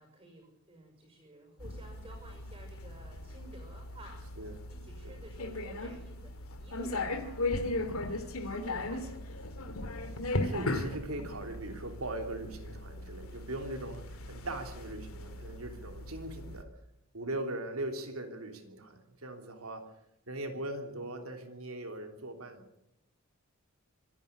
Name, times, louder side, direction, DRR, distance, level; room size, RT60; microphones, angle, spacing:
voice 1, 0.0-4.3 4.7-7.5 8.0-9.5, right 1 dB, 25° right, 3 dB, 5.9 m, -52 dB
sound 1, 1.6-16.6, left 2 dB, 80° left, 2.3 m, -38 dB
voice 2, 10.3-16.7 17.1-19.9 20.3-22.7, right 1 dB, 80° right, 5 dB, 3.3 m, -40 dB
26.0 x 11.0 x 9.8 m, 0.81 s
head